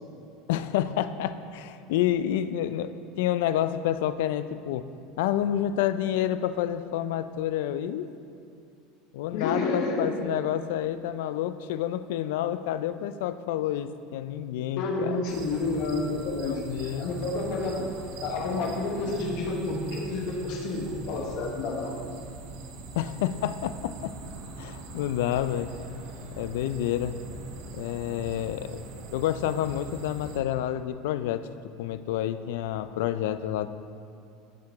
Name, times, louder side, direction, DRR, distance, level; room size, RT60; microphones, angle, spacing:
voice 1, 0.5-4.9 5.2-8.1 9.1-15.1 16.4-17.1 23.0-24.1 24.6-25.7 26.4-27.2 27.7-28.8 29.1-31.5 31.8-33.7, left 11 dB, 75° left, 12 dB, 0.4 m, -29 dB
voice 2, 9.3-10.3 14.8-17.9 18.2-22.0, left 3 dB, 60° left, -1 dB, 1.1 m, -30 dB
sound 1, 15.3-30.4, right 3 dB, 65° right, 0.9 m, -42 dB
13.5 x 4.8 x 3.5 m, 2.5 s
supercardioid pair, 150°, 0 cm